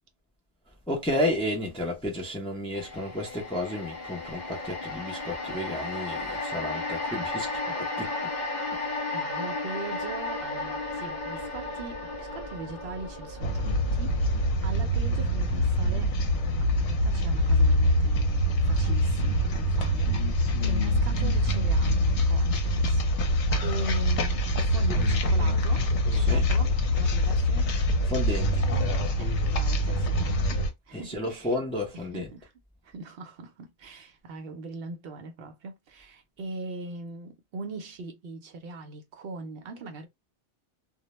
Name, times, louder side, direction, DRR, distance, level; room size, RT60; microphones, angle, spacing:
voice 1, 0.9-7.5 7.8-8.1 26.1-26.4 28.1-28.6 30.9-32.3, left 1 dB, 10° left, 0.3 m, -32 dB
sound 1, 2.7-17.1 17.4-17.6, left 2 dB, 45° left, 0.8 m, -35 dB
voice 2, 9.1-16.1 16.5-27.7 29.2-31.6 31.9-32.5 32.8-40.1, right 3 dB, 65° right, 0.7 m, -41 dB
sound 2, 13.4-30.7, equal, 75° left, 0.9 m, -24 dB
2.2 x 2.0 x 2.9 m
omnidirectional pair, 1.2 m